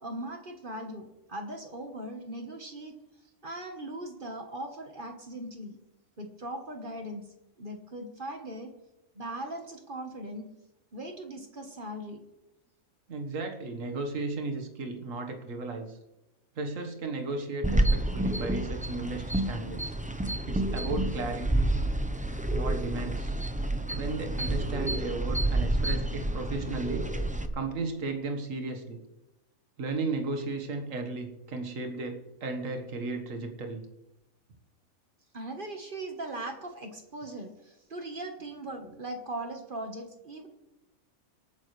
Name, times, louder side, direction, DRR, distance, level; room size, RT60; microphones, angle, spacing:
voice 1, 0.0-2.9 3.4-5.8 6.2-7.3 7.6-8.7 9.1-10.5 10.9-12.2 35.3-40.5, right 1 dB, 35° right, 4 dB, 1.4 m, -39 dB
voice 2, 13.1-16.0 16.6-19.9 20.5-21.7 22.5-23.3 23.9-27.1 27.5-29.0 29.8-33.8, right 3 dB, 60° right, 4 dB, 1.8 m, -35 dB
sound 1, 17.6-27.5, right 1 dB, 10° right, 0.5 m, -29 dB
26.0 x 9.2 x 3.3 m, 0.97 s
omnidirectional pair, 1.5 m